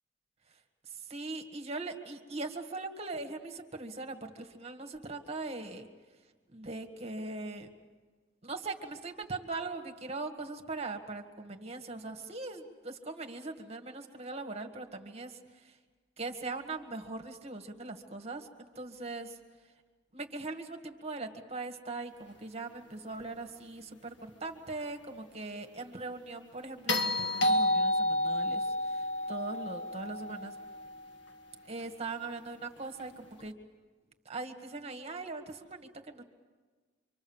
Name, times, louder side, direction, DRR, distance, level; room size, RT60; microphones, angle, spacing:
voice 1, 0.9-5.9 6.5-7.7 8.4-15.3 16.2-19.4 20.1-30.5 31.7-33.6 34.3-36.2, right 3 dB, 35° right, 5 dB, 1.8 m, -40 dB
sound 1, 26.9-31.2 33.4-33.5, left 1 dB, 65° left, 1.8 m, -30 dB
27.0 x 25.0 x 7.3 m, 1.4 s
head